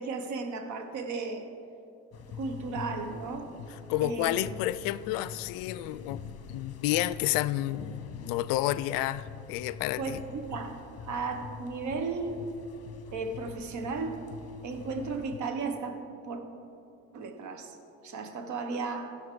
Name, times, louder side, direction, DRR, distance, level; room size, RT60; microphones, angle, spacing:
voice 1, 0.0-1.5 2.4-3.5 4.0-4.4 10.0-12.5 13.1-14.2 14.6-16.0 16.3-16.4 17.1-17.8 18.0-19.2, right 4 dB, 45° right, 6 dB, 1.2 m, -35 dB
Drum Ambience, 2.1-15.4, left 6 dB, 40° left, 1.0 m, -44 dB
voice 2, 3.9-10.2, left 15 dB, 60° left, 16 dB, 0.5 m, -30 dB
15.5 x 6.3 x 3.8 m, 2.6 s
supercardioid pair, 105°, 39 cm